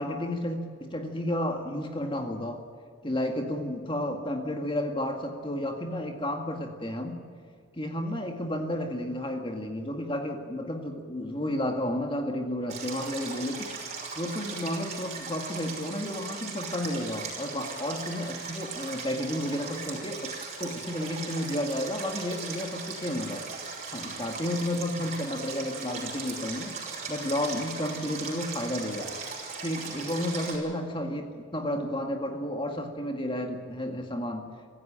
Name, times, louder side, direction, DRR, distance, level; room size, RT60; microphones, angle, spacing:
voice 1, 0.0-2.6 3.0-7.2 7.7-13.7 14.2-23.4 23.9-26.8 27.1-29.1 29.6-34.4, left 1 dB, 25° left, 4 dB, 1.9 m, -32 dB
Stream, 12.7-30.5, right 4 dB, 35° right, 5.8 m, -38 dB
25.5 x 15.5 x 8.9 m, 2.2 s
head